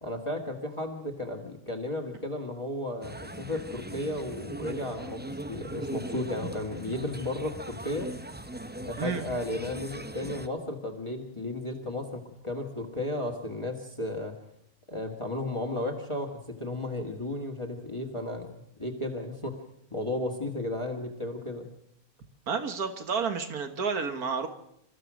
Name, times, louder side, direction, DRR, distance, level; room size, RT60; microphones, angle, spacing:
voice 1, 0.0-8.1 8.8-14.3 14.9-18.5 18.8-19.6 19.9-21.7, left 1 dB, 20° left, 2 dB, 2.1 m, -34 dB
sound 1, 3.0-10.5, right 1 dB, 10° right, 0.5 m, -40 dB
voice 2, 22.5-24.5, right 5 dB, 90° right, 7 dB, 2.1 m, -30 dB
28.5 x 14.5 x 6.4 m, 0.78 s
omnidirectional pair, 1.5 m